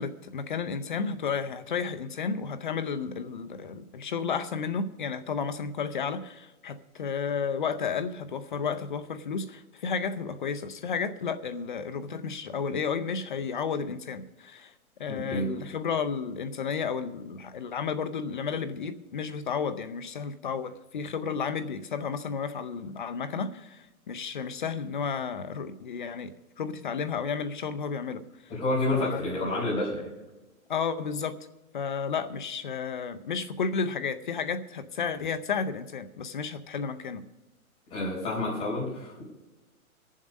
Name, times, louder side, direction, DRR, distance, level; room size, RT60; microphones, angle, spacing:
voice 1, 0.0-14.7 15.0-28.2 28.9-29.2 30.7-31.4 31.7-37.2, left 6 dB, 35° left, 12 dB, 0.6 m, -32 dB
voice 2, 15.1-15.5 28.5-30.0 37.9-39.2, left 2 dB, 10° left, -7 dB, 4.1 m, -29 dB
19.5 x 7.3 x 5.2 m, 1.1 s
hypercardioid pair, 165°, 43 cm